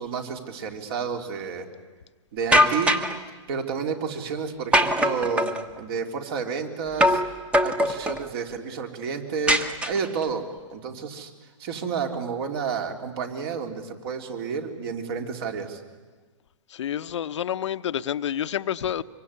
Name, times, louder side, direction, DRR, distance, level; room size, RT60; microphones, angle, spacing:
voice 1, 0.0-1.7 2.3-3.0 3.5-7.2 7.6-11.3 11.6-15.8, right 6 dB, 50° right, 3.5 m, -30 dB
sound 1, 2.5-3.2 4.7-5.6 7.0-7.3 7.5-8.2 9.5-10.2, equal, 5° right, 1.2 m, -21 dB
voice 2, 16.7-19.0, left 10 dB, 65° left, 0.9 m, -28 dB
24.5 x 24.0 x 9.9 m
hypercardioid pair, 135°, 16 cm